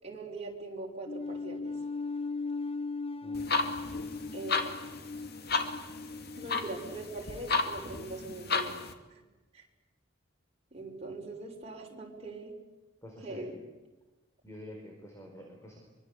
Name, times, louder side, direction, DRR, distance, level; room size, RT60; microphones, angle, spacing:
voice 1, 0.0-1.7 4.3-5.1 6.4-8.8 9.5-9.6 10.7-12.5 13.2-13.6, right 2 dB, 35° right, 0 dB, 5.7 m, -41 dB
sound 1, 1.1-7.5, left 3 dB, 30° left, 1.0 m, -38 dB
voice 2, 3.2-4.0 13.0-13.6 14.4-15.8, equal, 15° left, 1 dB, 4.7 m, -48 dB
sound 2, 3.3-8.9, left 3 dB, 55° left, 2.5 m, -34 dB
24.5 x 24.5 x 8.5 m, 1.1 s
head